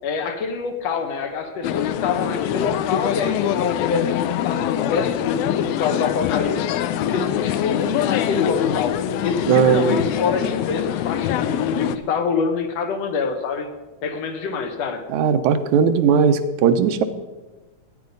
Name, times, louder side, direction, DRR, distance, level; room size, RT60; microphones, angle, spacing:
voice 1, 0.0-6.7 7.1-13.7 14.0-15.1, left 5 dB, 70° left, 6 dB, 2.1 m, -26 dB
sound 1, 1.6-12.0, left 11 dB, 85° left, 2.0 m, -24 dB
voice 2, 9.5-10.0 15.1-17.0, right 7 dB, 80° right, 9 dB, 2.1 m, -18 dB
14.0 x 9.4 x 5.3 m, 1.2 s
omnidirectional pair, 3.3 m